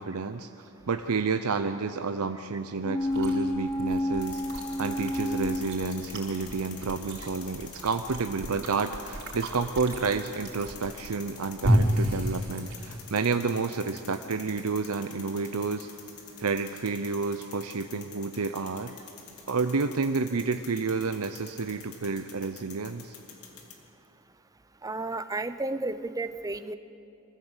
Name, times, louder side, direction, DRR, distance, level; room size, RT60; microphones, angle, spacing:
voice 1, 0.0-4.4 4.8-15.9 16.4-18.9 19.5-23.2, right 4 dB, 85° right, 8 dB, 0.7 m, -30 dB
sound 1, 2.8-6.6 6.9-7.0, left 1 dB, 20° left, 0.8 m, -30 dB
Chewing mastication, 3.0-13.2, equal, 55° right, 4.6 m, -32 dB
sound 2, 4.2-23.7, left 6 dB, 85° left, 2.5 m, -48 dB
voice 2, 24.8-26.8, right 2 dB, 15° right, 11 dB, 0.7 m, -32 dB
24.5 x 15.0 x 8.1 m, 2.9 s
head